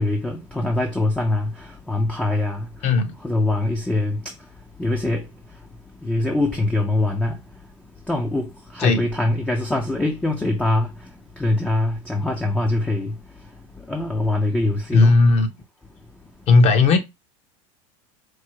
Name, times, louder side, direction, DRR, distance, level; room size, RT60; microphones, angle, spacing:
voice 1, 0.0-1.5 1.9-2.7 3.2-4.2 4.8-5.2 6.0-7.4 8.1-8.5 8.7-10.9 11.4-13.1 13.9-15.1, left 2 dB, 5° left, 0.5 m, -23 dB
voice 2, 2.8-3.2 8.8-9.0 14.9-15.5 16.5-17.0, left 3 dB, 40° left, 0.8 m, -15 dB
4.6 x 2.0 x 4.5 m
supercardioid pair, 140°, 17 cm